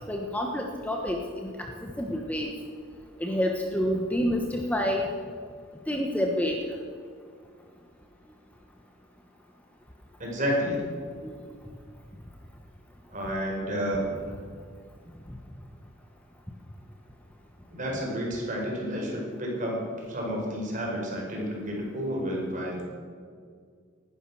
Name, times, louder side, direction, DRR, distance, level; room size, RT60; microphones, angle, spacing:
voice 1, 0.1-2.5 3.2-5.1 5.9-6.6 11.2-11.3, equal, 5° left, 1 dB, 1.2 m, -28 dB
voice 2, 10.2-10.8 13.1-14.1 17.7-19.7 20.1-22.8, equal, 40° right, -2 dB, 5.1 m, -30 dB
19.0 x 11.5 x 6.3 m, 2.1 s
head